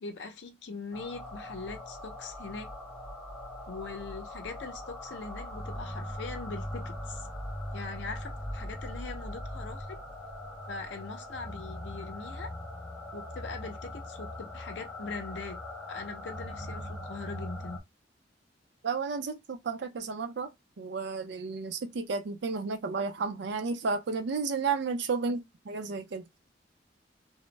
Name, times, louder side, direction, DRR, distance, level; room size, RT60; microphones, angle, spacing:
voice 1, 0.0-2.7 3.7-7.3 7.7-10.0 10.7-12.5 13.1-15.6 15.9-17.8 25.3-25.4, left 4 dB, 70° left, 0.6 m, -41 dB
sound 1, 0.9-17.8, left 1 dB, 5° left, 0.6 m, -40 dB
voice 2, 18.8-20.5 20.8-26.2, right 4 dB, 65° right, 0.5 m, -32 dB
2.1 x 2.0 x 3.2 m
head